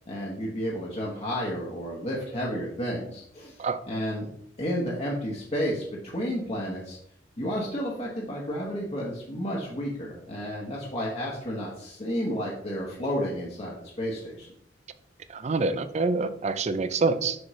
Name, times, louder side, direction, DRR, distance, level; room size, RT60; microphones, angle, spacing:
voice 1, 0.1-4.3 4.6-7.0 7.4-14.5, equal, 35° left, -4 dB, 1.1 m, -31 dB
voice 2, 15.3-17.4, right 3 dB, 35° right, 12 dB, 0.4 m, -26 dB
6.3 x 6.2 x 3.2 m, 0.69 s
head